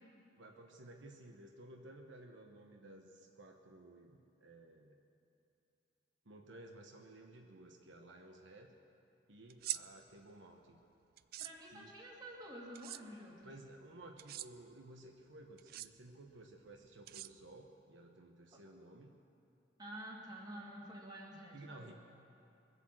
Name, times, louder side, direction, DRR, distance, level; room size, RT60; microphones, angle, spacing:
voice 1, 0.3-5.0 6.2-8.7 9.3-10.8 11.7-11.9 13.4-19.2 21.5-21.9, right 1 dB, 70° right, 3 dB, 1.1 m, -55 dB
sound 1, 9.5-9.8 11.2-11.5 12.7-13.0 14.2-14.5 15.6-15.9 17.1-17.7, right 14 dB, 50° right, 0.3 m, -42 dB
voice 2, 11.4-13.5 18.5-18.6 19.8-21.9, right 1 dB, 20° right, -2 dB, 2.2 m, -50 dB
22.5 x 8.2 x 7.6 m, 2.7 s
head